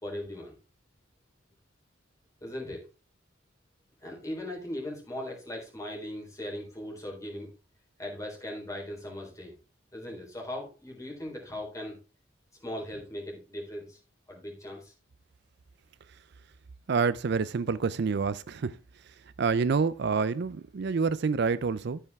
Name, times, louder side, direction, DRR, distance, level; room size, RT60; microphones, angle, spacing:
voice 1, 0.0-0.5 2.4-2.9 4.0-7.5 8.0-9.6 9.9-12.0 12.6-14.0 14.3-14.9, left 1 dB, 15° left, 3.8 m, -39 dB
voice 2, 16.9-18.7 19.4-22.0, right 5 dB, 55° right, 0.4 m, -27 dB
14.0 x 5.6 x 3.5 m
head